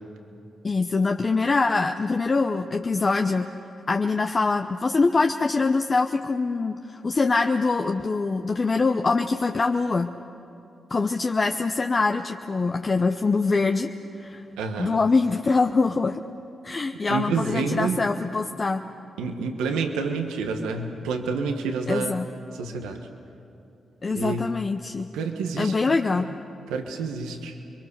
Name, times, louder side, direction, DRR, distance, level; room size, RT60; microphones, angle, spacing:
voice 1, 0.6-3.4 3.9-10.1 10.9-13.9 14.2-14.4 14.8-16.2 16.6-18.8 21.9-22.3 24.0-25.1 25.6-26.3, left 3 dB, 45° left, 4 dB, 0.9 m, -24 dB
voice 2, 14.6-15.0 17.1-18.0 19.2-22.2 22.5-23.0 24.1-24.5 25.1-26.3 26.7-27.5, right 4 dB, 90° right, 5 dB, 1.5 m, -29 dB
29.5 x 22.5 x 6.8 m, 2.8 s
supercardioid pair, 45°, 0 cm